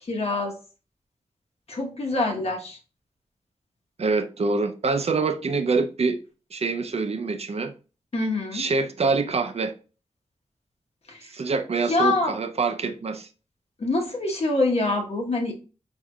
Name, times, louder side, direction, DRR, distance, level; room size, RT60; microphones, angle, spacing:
voice 1, 0.1-0.5 1.7-2.8 8.1-8.7 11.1-11.3 11.9-12.4 13.8-15.5, left 2 dB, 60° left, 1.1 m, -25 dB
voice 2, 4.0-6.2 6.5-7.7 8.5-9.7 11.3-13.3, right 4 dB, 60° right, 0.5 m, -25 dB
4.4 x 3.5 x 2.3 m
wide cardioid pair, 90°, 12 cm